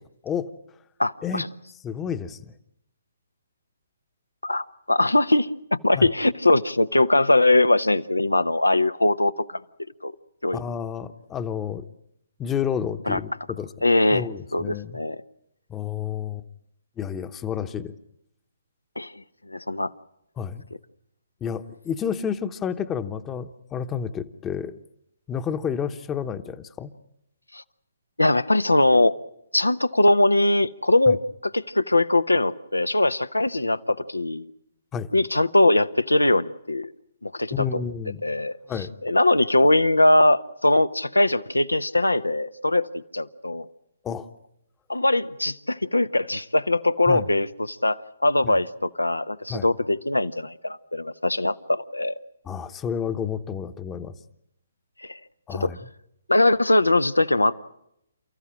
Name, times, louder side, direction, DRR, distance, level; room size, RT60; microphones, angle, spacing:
voice 1, 1.0-1.5 4.4-5.5 5.8-9.6 10.0-10.1 10.4-10.6 13.1-13.2 13.8-14.3 14.5-15.2 19.0-19.1 19.5-19.9 27.5-27.6 28.2-29.2 29.5-34.5 35.1-36.9 37.2-37.8 38.2-38.5 39.0-43.7 44.9-52.1 55.0-55.2 55.5-55.7 56.3-57.5, left 2 dB, 85° left, 13 dB, 0.9 m, -21 dB
voice 2, 1.8-2.5 5.9-6.1 10.5-11.8 12.4-13.7 14.1-15.0 15.7-16.4 17.0-17.9 20.4-20.6 21.4-24.8 25.3-26.9 31.1-31.2 34.9-35.1 37.5-38.2 38.7-38.9 44.0-44.3 47.1-47.3 48.4-48.6 49.5-49.7 52.5-54.1 55.5-55.8, left 7 dB, 15° left, 9 dB, 1.0 m, -30 dB
29.5 x 14.5 x 8.8 m, 0.79 s
figure-of-eight pair, 135°, 0 cm